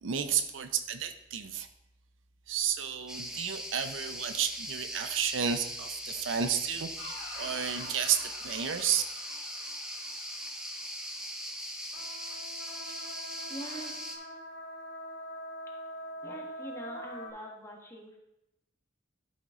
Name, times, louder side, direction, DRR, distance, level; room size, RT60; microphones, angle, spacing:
voice 1, 0.0-1.7 2.5-9.0, right 8 dB, 80° right, 9 dB, 0.6 m, -32 dB
sound 1, 3.1-14.2, equal, 5° right, 0.8 m, -40 dB
sound 2, 7.0-11.6 11.9-17.3, left 1 dB, 75° left, 2.2 m, -45 dB
voice 2, 13.5-14.3 15.7-15.8 16.2-18.2, right 1 dB, 15° left, 0 dB, 1.3 m, -44 dB
12.0 x 4.0 x 3.6 m, 0.88 s
head